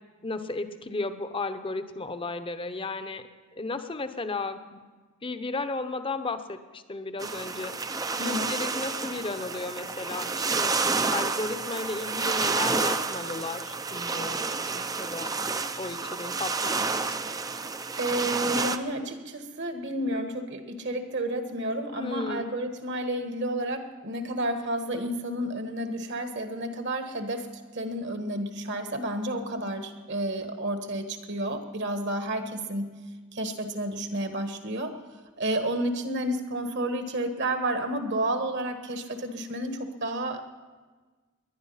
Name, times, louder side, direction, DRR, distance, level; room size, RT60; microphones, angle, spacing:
voice 1, 0.2-3.3 3.5-4.9 5.2-10.8 11.1-15.3 15.8-17.2 22.0-22.5, left 3 dB, 25° left, 10 dB, 0.8 m, -34 dB
sound 1, 7.2-18.8, right 4 dB, 15° right, 0.5 m, -30 dB
voice 2, 8.1-8.5 18.0-33.0 33.3-35.0 35.4-40.4, right 1 dB, 55° right, 7 dB, 1.4 m, -31 dB
20.0 x 11.0 x 5.6 m, 1.3 s
head